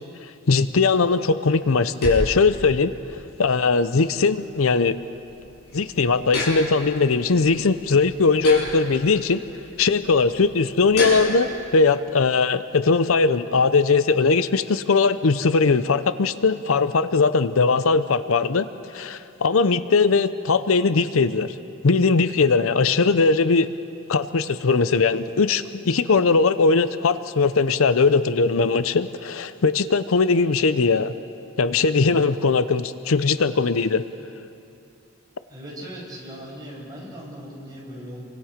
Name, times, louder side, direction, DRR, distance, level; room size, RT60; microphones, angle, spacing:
voice 1, 0.5-2.9 3.4-5.0 5.7-9.4 9.8-11.5 11.7-18.7 18.9-21.5 21.8-23.7 24.1-31.1 31.6-34.0, left 4 dB, 80° left, 13 dB, 0.7 m, -20 dB
sound 1, 0.9-11.6, left 1 dB, 55° left, 6.3 m, -34 dB
voice 2, 35.5-38.2, equal, 20° right, -4 dB, 6.5 m, -38 dB
28.5 x 24.5 x 5.1 m, 2.7 s
head